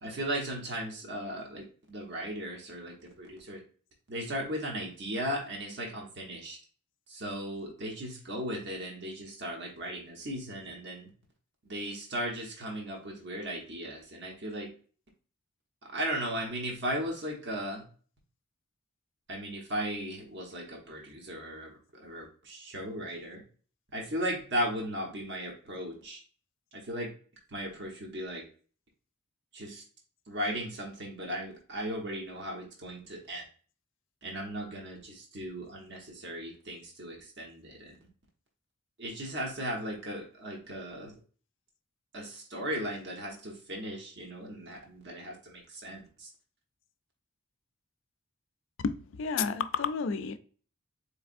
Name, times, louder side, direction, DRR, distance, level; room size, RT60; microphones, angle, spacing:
voice 1, 0.0-3.6 4.1-6.6 7.1-11.1 11.6-14.7 15.8-17.8 19.3-23.4 23.9-26.2 26.7-27.1 27.5-28.4 29.5-29.8 30.3-33.4 34.2-38.0 39.0-41.1 42.1-46.3, equal, 55° right, 1.1 m, -37 dB
voice 2, 48.8-50.4, left 5 dB, 65° left, 0.4 m, -31 dB
4.2 x 3.3 x 2.5 m
head